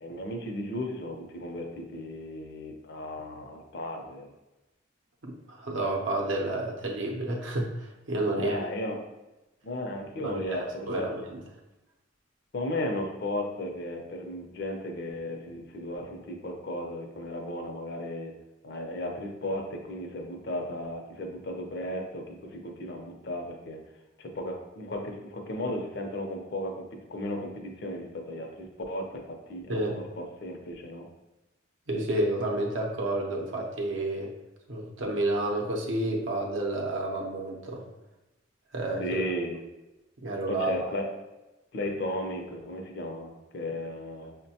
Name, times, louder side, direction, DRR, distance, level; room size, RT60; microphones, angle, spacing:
voice 1, 0.0-4.3 8.3-9.0 9.6-11.1 12.5-18.3 18.6-23.8 24.2-31.1 39.0-39.6 40.5-41.1 41.7-44.4, left 1 dB, 60° left, 2 dB, 0.6 m, -35 dB
voice 2, 5.2-8.6 10.2-11.4 29.7-30.0 31.9-34.3 34.7-37.8 38.7-39.2 40.2-40.8, right 2 dB, 75° right, 0 dB, 0.6 m, -30 dB
5.7 x 2.1 x 2.7 m, 1.0 s
head